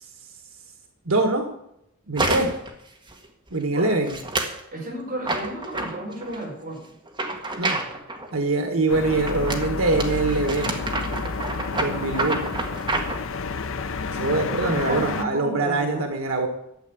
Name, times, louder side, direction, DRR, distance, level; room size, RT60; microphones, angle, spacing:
voice 1, 1.0-1.4 2.1-2.5 3.5-4.1 7.6-7.8 8.3-10.7 11.8-12.5 14.1-16.5, right 2 dB, 90° right, 5 dB, 1.5 m, -23 dB
sound 1, 2.2-2.7 3.1-3.5 4.1-4.6 5.2-6.4 7.1-8.3 9.3-13.2, right 2 dB, 20° right, 1.7 m, -28 dB
voice 2, 4.7-6.9 14.6-16.1, right 1 dB, 40° right, -2 dB, 5.3 m, -33 dB
sound 2, 8.9-15.2, left 4 dB, 75° left, 0.7 m, -30 dB
12.5 x 7.9 x 9.0 m, 0.82 s
head